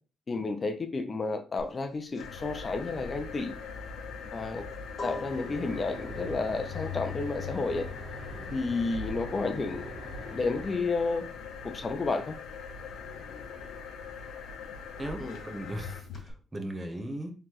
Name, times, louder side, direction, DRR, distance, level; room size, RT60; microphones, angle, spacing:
voice 1, 0.3-3.6 4.3-4.7 5.0-7.9 8.5-10.0 10.3-11.2 11.6-12.4 15.2-15.4, left 3 dB, 35° left, 0.5 m, -31 dB
sound 1, 1.6-11.8 12.1-16.3, left 2 dB, 50° left, 1.7 m, -48 dB
sound 2, 2.2-16.2, left 5 dB, 85° left, 0.8 m, -41 dB
sound 3, 5.3-10.8, right 2 dB, 50° right, 1.1 m, -45 dB
voice 2, 15.0-17.3, right 1 dB, 20° right, 0.9 m, -38 dB
3.9 x 3.2 x 3.0 m
cardioid pair, 90°, 0 cm